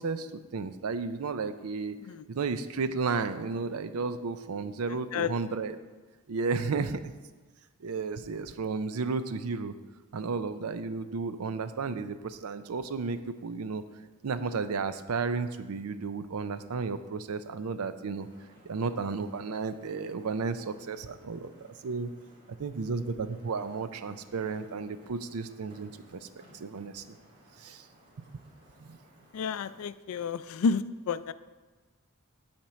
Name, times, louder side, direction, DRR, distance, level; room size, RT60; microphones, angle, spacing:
voice 1, 0.0-2.0 2.3-5.8 6.3-7.0 7.8-9.7 10.1-13.8 14.2-18.3 18.6-22.1 22.6-26.3 26.5-27.1 27.6-27.8 28.2-28.3 28.8-29.0, right 4 dB, 85° right, 11 dB, 0.5 m, -33 dB
sound 1, 18.2-29.8, equal, 50° right, 2.8 m, -59 dB
voice 2, 29.3-31.3, left 5 dB, 70° left, 14 dB, 0.4 m, -30 dB
8.7 x 4.4 x 6.2 m, 1.3 s
head